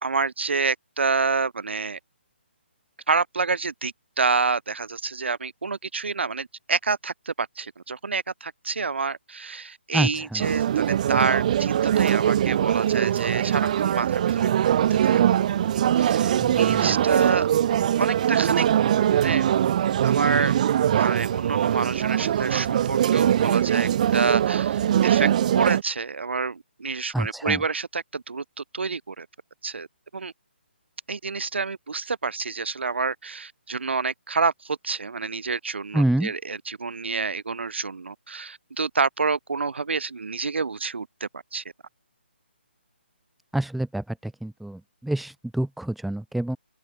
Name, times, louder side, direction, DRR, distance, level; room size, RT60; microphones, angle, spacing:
voice 1, 0.0-2.0 3.1-14.5 14.9-15.2 15.6-17.5 18.0-18.6 19.1-19.5 20.0-20.5 21.0-25.3 25.5-29.3 29.6-29.9 30.1-30.3 31.1-41.6, right 4 dB, 75° right, 2.5 m, -28 dB
voice 2, 9.9-10.5 16.4-16.9 27.1-27.6 35.9-36.3 43.5-46.6, right 1 dB, ahead, 1.0 m, -27 dB
sound 1, 10.4-25.8, right 10 dB, 40° right, 1.2 m, -22 dB
open air
hypercardioid pair, 155°, 6 cm